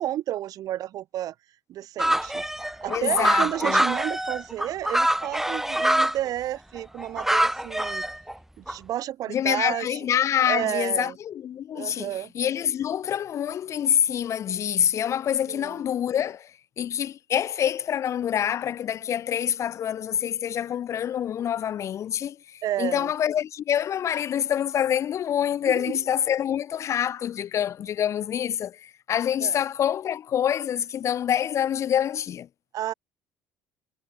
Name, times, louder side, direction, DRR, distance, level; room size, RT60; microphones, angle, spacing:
voice 1, 0.0-1.3 1.7-2.4 2.8-8.0 8.6-10.0 10.5-11.2 11.7-12.3 15.5-15.8 22.6-23.1 25.7-26.0 29.4-29.6 32.7-32.9, right 13 dB, 60° right, 2.5 m, -31 dB
sound 1, 2.0-6.2 6.8-8.3 8.7-8.8, right 1 dB, 5° right, 0.9 m, -24 dB
voice 2, 2.9-3.8 9.3-32.5, left 9 dB, 45° left, 0.4 m, -26 dB
hypercardioid pair, 55°, 7 cm